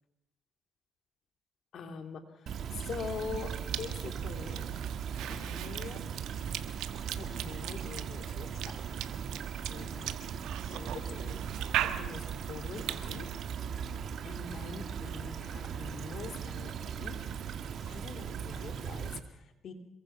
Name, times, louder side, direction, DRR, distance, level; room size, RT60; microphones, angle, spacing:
voice 1, 1.7-4.7 5.3-6.0 7.1-8.7 9.7-13.3 14.2-17.2 17.8-19.7, left 5 dB, 65° left, 6 dB, 3.2 m, -44 dB
Stream / Trickle dribble, 2.5-19.2, right 8 dB, 65° right, 1.7 m, -38 dB
Cough / Chewing mastication, 3.1-13.6, right 12 dB, 90° right, 1.5 m, -40 dB
27.0 x 22.5 x 6.0 m, 0.82 s
cardioid pair, 90°, 0 cm